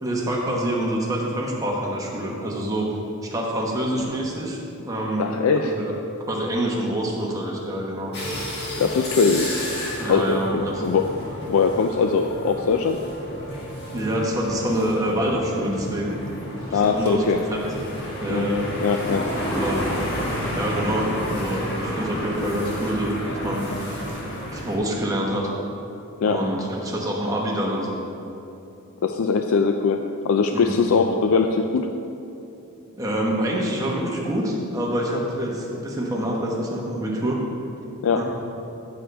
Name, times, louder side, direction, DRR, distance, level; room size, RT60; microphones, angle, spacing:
voice 1, 0.0-2.9 3.2-5.3 5.7-5.9 6.3-8.1 10.0-10.9 13.9-16.2 16.7-17.7 18.2-19.0 19.5-19.9 20.5-23.6 24.5-25.5 26.2-28.0 30.5-30.9 33.0-37.4 38.1-38.2, right 1 dB, 15° right, -3 dB, 1.2 m, -26 dB
voice 2, 5.2-5.7 8.8-9.5 10.1-13.0 16.7-17.4 18.3-18.5 18.8-19.3 26.2-26.4 29.0-31.9 38.0-38.2, left 5 dB, 75° left, 5 dB, 0.4 m, -21 dB
sound 1, 8.1-24.8, equal, 50° left, 1.6 m, -31 dB
13.5 x 6.5 x 3.5 m, 2.8 s
head